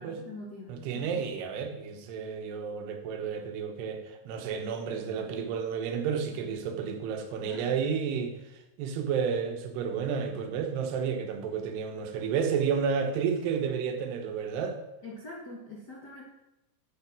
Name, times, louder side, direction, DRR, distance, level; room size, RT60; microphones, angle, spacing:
voice 1, 0.0-1.3 7.4-7.7 15.0-16.2, left 2 dB, 65° left, -2 dB, 1.0 m, -44 dB
voice 2, 0.7-8.3 8.8-14.8, right 6 dB, 75° right, 5 dB, 3.1 m, -31 dB
9.4 x 8.8 x 6.1 m, 0.92 s
omnidirectional pair, 4.9 m